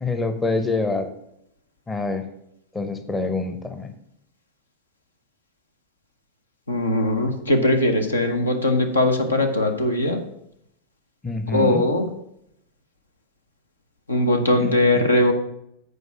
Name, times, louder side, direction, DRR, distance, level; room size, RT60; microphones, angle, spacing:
voice 1, 0.0-1.1 1.9-2.2 2.7-3.9 11.2-11.8 14.6-15.0, left 3 dB, 15° left, 8 dB, 0.7 m, -26 dB
voice 2, 6.7-10.2 11.5-12.1 14.1-15.3, left 1 dB, 75° left, 5 dB, 1.0 m, -20 dB
8.1 x 4.7 x 6.1 m, 0.77 s
figure-of-eight pair, 90°, 0 cm